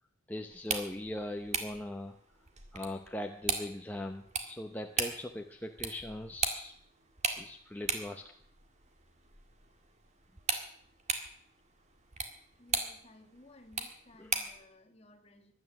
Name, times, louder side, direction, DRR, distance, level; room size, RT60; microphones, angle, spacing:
voice 1, 0.3-2.1 2.7-6.7 7.4-8.3 14.2-14.3, left 1 dB, 10° left, 3 dB, 0.8 m, -40 dB
sound 1, 0.5-14.6, right 5 dB, 35° right, 1.9 m, -39 dB
voice 2, 12.6-15.5, left 1 dB, 30° left, 6 dB, 1.6 m, -58 dB
15.5 x 11.0 x 7.2 m, 0.63 s
head